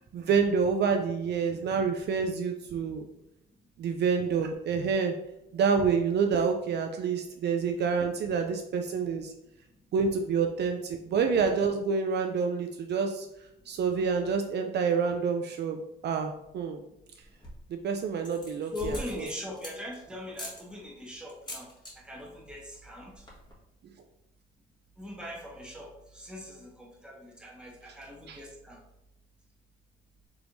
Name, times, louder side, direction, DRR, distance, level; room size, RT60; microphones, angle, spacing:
voice 1, 0.1-3.0 3.8-5.1 5.5-9.3 9.9-13.3 13.7-16.8 17.7-18.9 28.3-28.4, right 5 dB, 60° right, 5 dB, 0.4 m, -28 dB
sound 1, 17.2-17.7 18.2-20.0 20.3-20.6 21.3-21.9 22.2-22.5 22.8-22.9 23.1-23.5, equal, 20° left, 1.3 m, -42 dB
voice 2, 18.7-21.7 21.9-23.3 25.0-28.8, left 1 dB, 5° right, -2 dB, 1.2 m, -41 dB
4.6 x 3.3 x 2.6 m, 0.87 s
cardioid pair, 90°, 20 cm